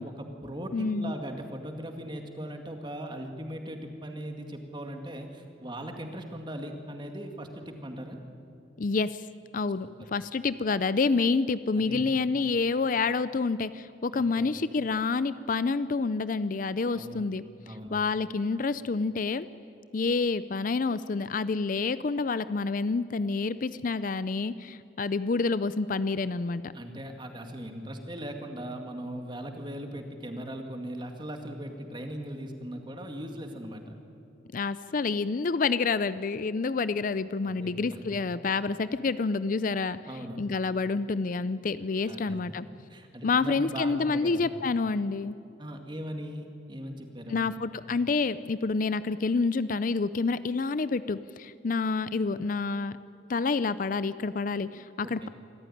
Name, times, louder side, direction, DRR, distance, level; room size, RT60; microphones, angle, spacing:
voice 1, 0.0-8.2 9.8-9.9 11.8-12.0 14.1-14.5 16.9-17.2 17.7-18.1 26.7-33.8 37.5-38.0 40.1-40.4 42.1-42.6 42.9-44.4 45.6-47.5 55.0-55.3, equal, 25° right, 5 dB, 2.1 m, -39 dB
voice 2, 0.7-1.1 8.8-9.3 9.5-17.4 17.9-19.5 19.9-26.7 34.5-42.7 43.2-45.3 47.3-53.0 53.3-55.3, left 4 dB, 45° left, 15 dB, 0.5 m, -28 dB
25.5 x 14.5 x 10.0 m, 2.5 s
head